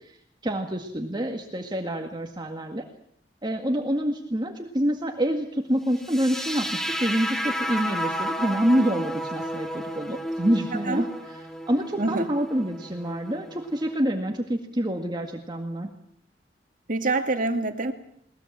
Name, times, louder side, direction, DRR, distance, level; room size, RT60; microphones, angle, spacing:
voice 1, 0.4-2.8 3.4-11.1 11.7-15.9, equal, 25° right, 3 dB, 1.9 m, -27 dB
sound 1, 6.0-14.0, equal, 5° left, 2.0 m, -32 dB
voice 2, 10.7-11.0 12.0-12.3 16.9-17.9, right 2 dB, 50° right, 6 dB, 2.2 m, -25 dB
21.5 x 20.0 x 7.5 m, 0.70 s
head